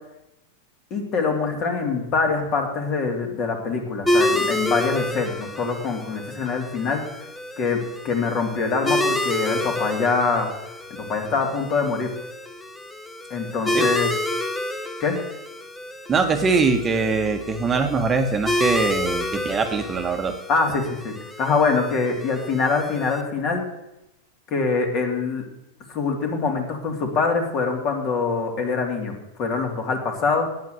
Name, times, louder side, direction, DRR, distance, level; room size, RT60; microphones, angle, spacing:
voice 1, 0.9-7.0 7.6-10.5 11.0-12.1 13.3-14.1 15.0-15.2 20.5-23.6 24.5-25.4 25.9-29.1 29.4-30.5, left 4 dB, 40° left, 3 dB, 2.6 m, -24 dB
sound 1, 4.1-23.2, left 1 dB, 10° left, 1.0 m, -29 dB
voice 2, 16.1-20.3, right 4 dB, 20° right, 5 dB, 1.3 m, -22 dB
9.3 x 8.5 x 7.8 m, 0.90 s
hypercardioid pair, 130°, 0 cm